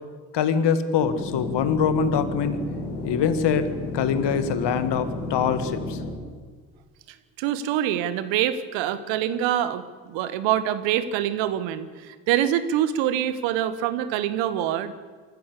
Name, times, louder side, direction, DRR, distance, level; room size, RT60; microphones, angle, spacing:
voice 1, 0.3-2.6 3.0-6.0, left 7 dB, 65° left, 11 dB, 1.9 m, -24 dB
sound 1, 1.0-6.1, left 2 dB, 85° left, 3.7 m, -32 dB
voice 2, 7.4-14.9, right 11 dB, 80° right, 14 dB, 1.3 m, -25 dB
24.5 x 14.5 x 8.3 m, 1.5 s
hypercardioid pair, 40°, 44 cm